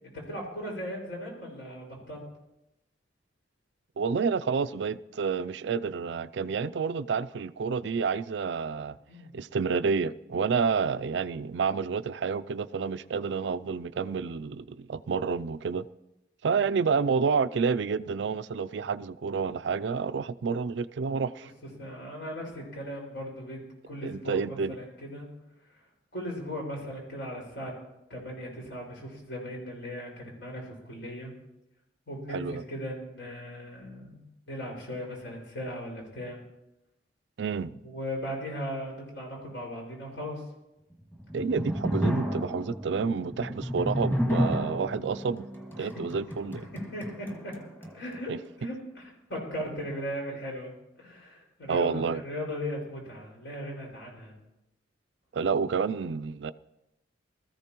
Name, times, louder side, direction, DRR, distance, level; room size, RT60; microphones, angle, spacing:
voice 1, 0.1-2.2 9.1-9.3 16.5-16.6 21.6-23.6 23.9-25.3 26.1-27.7 28.1-31.3 32.1-34.2 34.5-36.4 37.8-40.4 45.8-46.1 46.7-47.5 47.9-48.3 48.6-50.7 51.0-54.4, equal, 70° left, -1 dB, 5.4 m, -38 dB
voice 2, 4.0-9.0 9.3-15.8 16.4-21.5 24.0-24.8 32.3-32.6 37.4-37.7 41.3-45.5 45.8-46.7 48.3-48.4 51.7-52.2 55.3-56.5, right 5 dB, 70° right, 14 dB, 0.4 m, -29 dB
sound 1, 41.0-48.2, equal, 10° left, 1.8 m, -32 dB
20.5 x 14.0 x 3.0 m, 0.90 s
head